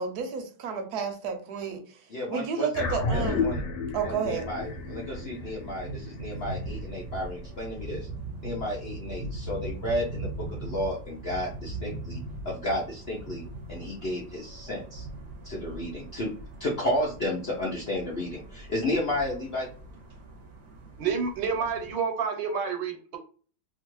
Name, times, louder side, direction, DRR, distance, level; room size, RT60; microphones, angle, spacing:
voice 1, 0.0-1.8 2.3-3.5 3.9-4.5, right 6 dB, 70° right, 6 dB, 1.0 m, -31 dB
voice 2, 2.1-3.6 4.0-8.1 8.4-12.2 12.4-13.4 13.7-15.1 15.4-16.3 16.6-19.7, left 1 dB, 65° left, -4 dB, 0.6 m, -32 dB
sound 1, 2.7-7.4, left 3 dB, 90° left, 1.3 m, -32 dB
sound 2, 4.1-21.9, right 2 dB, 50° right, 0.7 m, -40 dB
voice 3, 21.0-23.2, right 5 dB, 85° right, 5 dB, 1.4 m, -29 dB
2.9 x 2.4 x 3.0 m, 0.40 s
omnidirectional pair, 1.9 m